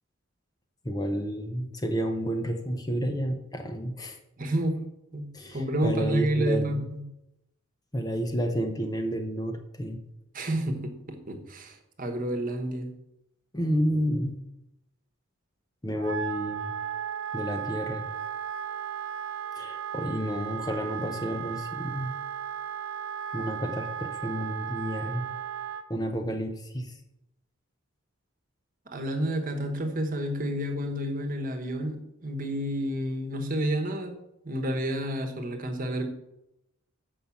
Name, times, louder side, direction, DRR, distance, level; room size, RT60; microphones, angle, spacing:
voice 1, 0.8-4.2 5.3-6.8 7.9-10.0 13.5-14.4 15.8-16.8 17.3-18.1 19.6-22.1 23.3-25.3 25.9-27.0, equal, 15° left, 5 dB, 0.7 m, -30 dB
voice 2, 4.4-4.8 5.1-7.0 10.3-12.9 28.9-34.1 34.4-36.1, right 1 dB, 40° right, 5 dB, 1.2 m, -30 dB
Wind instrument woodwind instrument, 15.9-25.8, right 8 dB, 70° right, 0.7 m, -35 dB
7.4 x 5.5 x 7.1 m, 0.86 s
head